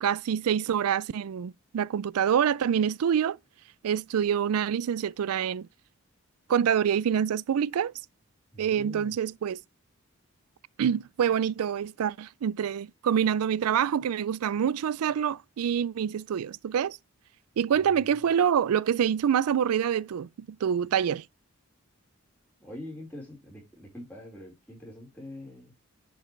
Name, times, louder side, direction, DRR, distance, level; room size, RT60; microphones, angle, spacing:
voice 1, 0.0-3.4 3.8-5.7 6.5-7.9 8.6-9.6 10.8-17.0 17.6-21.2, right 8 dB, 90° right, 0.4 m, -26 dB
voice 2, 8.5-9.2 17.7-18.3 22.6-25.7, left 1 dB, 10° left, 4.3 m, -44 dB
10.5 x 5.4 x 3.2 m
head